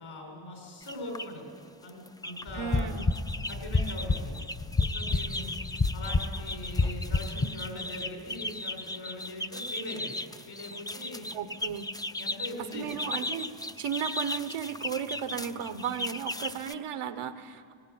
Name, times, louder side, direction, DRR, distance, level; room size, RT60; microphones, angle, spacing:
voice 1, 0.0-1.5 1.8-2.9 3.5-4.3 4.9-5.6 5.9-10.2 10.5-11.3 12.2-12.9, left 1 dB, 65° left, 0 dB, 7.0 m, -41 dB
sound 1, 0.8-1.3 1.8-2.5 2.7-16.7, left 2 dB, 10° left, 0.5 m, -37 dB
sound 2, 2.5-7.5, left 3 dB, 30° left, 1.1 m, -29 dB
voice 2, 2.5-3.1 11.3-11.9 12.7-13.5 13.8-17.7, right 8 dB, 85° right, 11 dB, 1.2 m, -34 dB
18.0 x 18.0 x 10.0 m, 2.5 s
cardioid pair, 80°, 50 cm